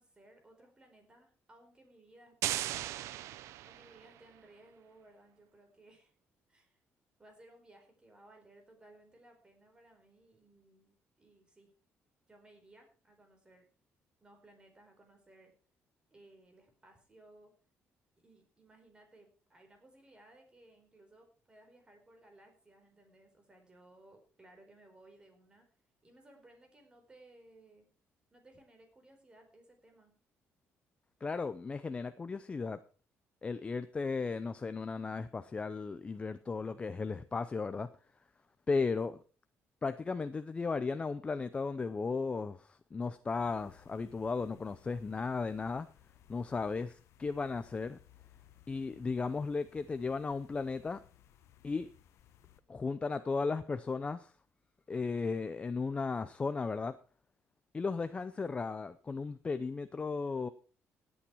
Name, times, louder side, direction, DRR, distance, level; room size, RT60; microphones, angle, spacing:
voice 1, 0.0-2.9 3.6-6.1 6.5-6.8 7.2-11.7 12.3-13.6 14.2-15.5 16.1-17.5 18.2-25.6 26.0-27.9 28.3-30.1, right 1 dB, 20° right, 4 dB, 4.6 m, -60 dB
sound 1, 2.4-4.2, right 14 dB, 90° right, 0.6 m, -37 dB
voice 2, 31.2-32.8 33.4-37.9 38.7-39.2 39.8-45.9 46.3-48.0 48.7-51.0 51.6-51.9 52.7-54.3 54.9-57.0 57.7-60.5, left 4 dB, 25° left, 11 dB, 0.6 m, -35 dB
sound 2, 43.4-52.6, left 11 dB, 75° left, 1.3 m, -62 dB
17.0 x 8.7 x 4.6 m, 0.39 s
cardioid pair, 130°, 5 cm